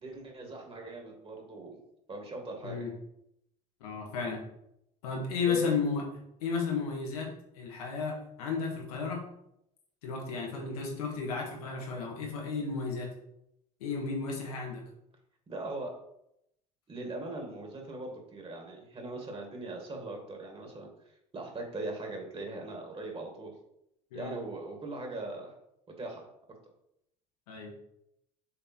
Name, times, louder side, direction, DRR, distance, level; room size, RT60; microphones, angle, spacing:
voice 1, 0.0-1.8 2.1-2.9 5.4-5.8 15.5-15.9 16.9-20.9 21.3-23.5 24.1-25.5 26.0-26.3, right 2 dB, 30° right, 1 dB, 2.0 m, -40 dB
voice 2, 3.8-4.4 5.0-6.0 6.4-9.2 10.0-13.1 13.8-14.8 24.1-24.4 27.5-27.7, left 5 dB, 85° left, 0 dB, 1.7 m, -33 dB
6.7 x 3.5 x 4.5 m, 0.79 s
hypercardioid pair, 75°, 19 cm